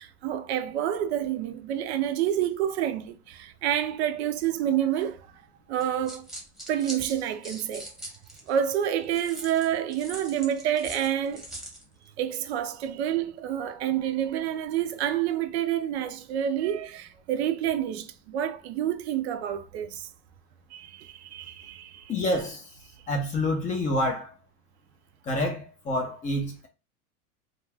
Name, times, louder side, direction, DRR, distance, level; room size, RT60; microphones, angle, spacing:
voice 1, 0.0-5.3 5.7-6.3 6.7-7.9 8.5-11.5 12.2-20.1 20.7-22.1, right 10 dB, 50° right, 0.5 m, -28 dB
sound 1, 5.8-8.6 9.1-11.8, right 1 dB, ahead, 0.9 m, -42 dB
voice 2, 22.1-22.7 23.1-24.3 25.3-26.7, left 1 dB, 15° left, 0.5 m, -27 dB
2.4 x 2.3 x 3.2 m
hypercardioid pair, 100°, 45 cm